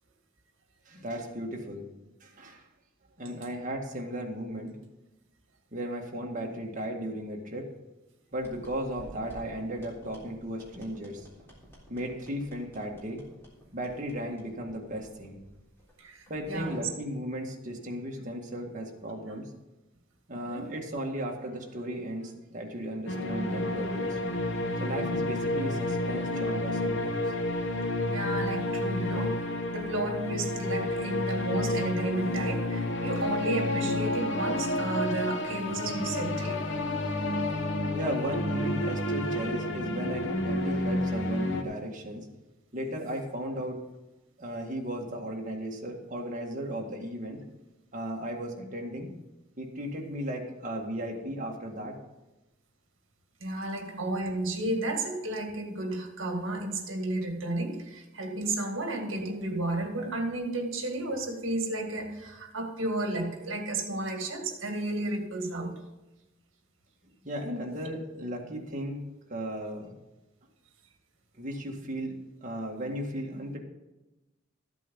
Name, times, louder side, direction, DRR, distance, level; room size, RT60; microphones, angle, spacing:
voice 1, 0.9-1.9 2.2-2.6 3.2-4.8 5.7-7.7 8.3-11.3 11.9-13.2 13.7-15.4 16.3-19.5 20.3-24.2 24.8-27.3 37.9-42.3 42.7-43.8 44.4-47.4 47.9-49.1 49.6-52.0 67.2-69.0 69.3-69.9 71.3-72.1 72.4-73.6, equal, 40° right, 0 dB, 1.9 m, -35 dB
sound 1, 8.3-16.8, equal, 10° left, 3.5 m, -53 dB
voice 2, 16.0-16.9 20.4-20.7 28.1-29.5 29.7-36.7 53.4-65.8, right 2 dB, 70° right, 4 dB, 1.8 m, -32 dB
sound 2, 23.1-41.6, left 1 dB, 60° left, 1.1 m, -30 dB
14.0 x 8.3 x 5.4 m, 1.0 s
head